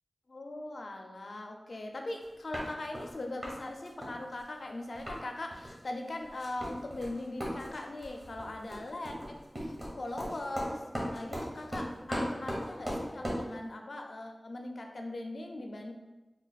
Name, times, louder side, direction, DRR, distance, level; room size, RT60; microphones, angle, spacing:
voice 1, 0.3-10.8 11.1-15.9, left 2 dB, 75° left, 3 dB, 0.4 m, -40 dB
sound 1, 2.2-2.3 2.5-3.1 3.4-3.6 3.9-5.2 5.5-5.8 6.1-13.5, equal, 45° right, 1.2 m, -38 dB
3.3 x 2.3 x 3.9 m, 1.1 s
wide cardioid pair, 45°, 0 cm